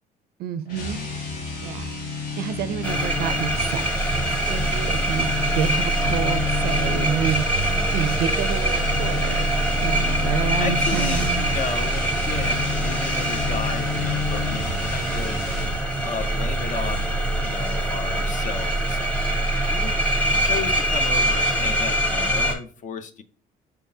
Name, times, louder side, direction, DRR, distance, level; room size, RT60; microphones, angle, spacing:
voice 1, 0.4-1.0 1.6-1.9 2.4-3.9 4.5-9.4 9.8-11.5, right 9 dB, 65° right, 14 dB, 0.4 m, -29 dB
sound 1, 0.7-15.8, left 4 dB, 80° left, 1.9 m, -31 dB
sound 2, 2.8-22.5, right 1 dB, 10° left, 1.1 m, -24 dB
sound 3, 4.5-15.3 15.6-15.7 16.0-16.2 16.7-17.1 17.6-17.7 17.9-18.4 18.7-18.8, right 4 dB, 10° right, 0.6 m, -37 dB
voice 2, 10.6-15.5 16.0-23.2, left 5 dB, 50° left, 10 dB, 0.7 m, -34 dB
5.4 x 3.5 x 2.7 m, 0.41 s
cardioid pair, 110°, 17 cm